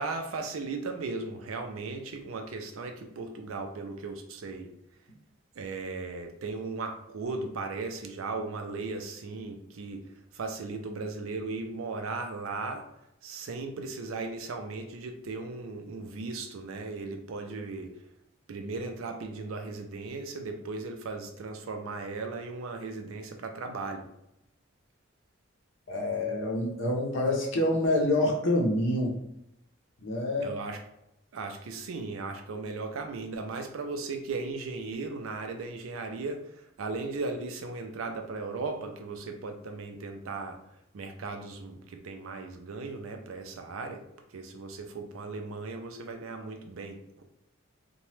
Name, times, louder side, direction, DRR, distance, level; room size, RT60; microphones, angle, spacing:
voice 1, 0.0-4.7 5.6-10.0 10.3-12.9 13.2-17.9 18.5-24.1 30.4-30.8 31.3-36.5 36.8-40.6 40.9-44.0 44.3-47.2, right 3 dB, 85° right, 5 dB, 0.4 m, -37 dB
voice 2, 25.9-29.2 30.0-30.6, left 1 dB, 70° left, 0 dB, 0.6 m, -27 dB
2.9 x 2.2 x 3.1 m, 0.81 s
head